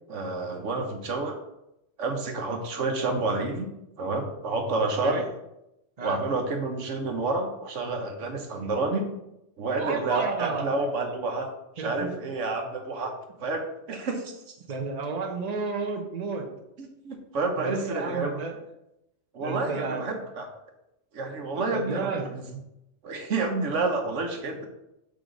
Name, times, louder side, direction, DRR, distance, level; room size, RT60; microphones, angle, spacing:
voice 1, 0.1-1.4 2.0-3.7 4.0-5.2 6.0-9.1 9.6-11.5 11.8-13.1 13.4-14.3 16.8-18.4 19.3-20.5 21.1-22.1 23.0-24.7, right 3 dB, 85° right, 3 dB, 1.3 m, -29 dB
voice 2, 9.8-10.6 11.8-12.1 14.7-16.5 17.6-18.6 19.4-20.1 21.5-22.3, right 4 dB, 35° right, 2 dB, 1.0 m, -32 dB
6.8 x 4.9 x 3.9 m, 0.87 s
omnidirectional pair, 1.2 m